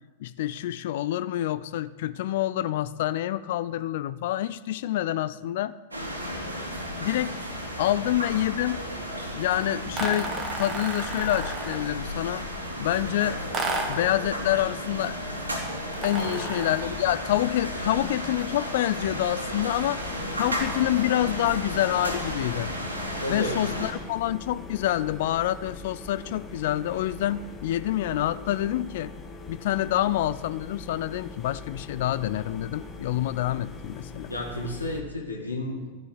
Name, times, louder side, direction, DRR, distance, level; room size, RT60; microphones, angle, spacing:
voice 1, 0.2-5.7 7.0-7.4 7.8-8.8 9.3-12.4 12.8-13.4 13.9-15.2 15.7-20.0 20.4-22.7 23.3-29.1 29.5-34.3, left 13 dB, 55° left, 15 dB, 0.4 m, -27 dB
sound 1, 5.9-23.9, equal, 80° right, 2.7 m, -34 dB
sound 2, 9.9-11.9 13.5-14.1 15.9-17.0, right 3 dB, 25° right, 1.9 m, -32 dB
voice 2, 16.1-16.7 17.7-18.1 20.4-20.7 23.0-24.0 34.3-36.0, left 1 dB, 80° left, 0 dB, 1.7 m, -34 dB
sound 3, 20.0-35.0, left 2 dB, 15° left, 1.7 m, -42 dB
13.5 x 6.3 x 9.8 m, 1.2 s
figure-of-eight pair, 90°, 0 cm